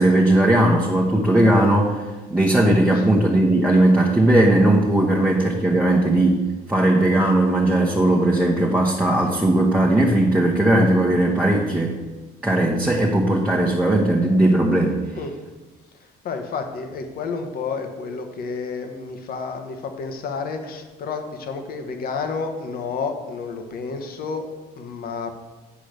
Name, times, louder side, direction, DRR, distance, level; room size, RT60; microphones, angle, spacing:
voice 1, 0.0-2.0 2.3-6.4 6.7-11.9 12.4-15.0, right 1 dB, 10° right, -3 dB, 1.2 m, -18 dB
voice 2, 16.2-25.3, left 4 dB, 60° left, 6 dB, 1.4 m, -30 dB
8.4 x 5.0 x 6.7 m, 1.2 s
cardioid pair, 110°, 17 cm